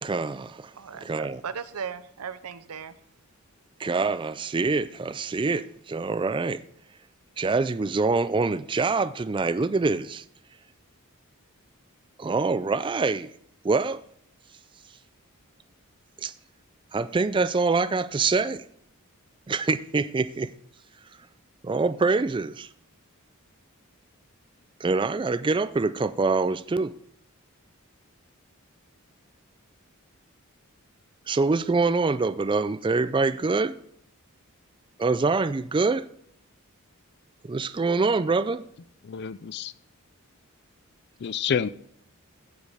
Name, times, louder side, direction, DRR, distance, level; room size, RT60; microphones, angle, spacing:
voice 1, 0.0-0.7 1.0-1.4 3.8-6.6 7.4-10.2 12.2-13.3 13.6-14.0 16.2-16.3 16.9-18.7 19.5-20.5 21.6-22.7 24.8-26.9 31.3-33.7 35.0-36.1 37.4-38.6, right 3 dB, 20° right, 0.3 m, -25 dB
voice 2, 0.8-2.9, right 6 dB, 85° right, 0.6 m, -37 dB
voice 3, 39.0-39.7 41.2-41.7, left 7 dB, 50° left, 0.4 m, -28 dB
15.5 x 5.3 x 4.9 m
head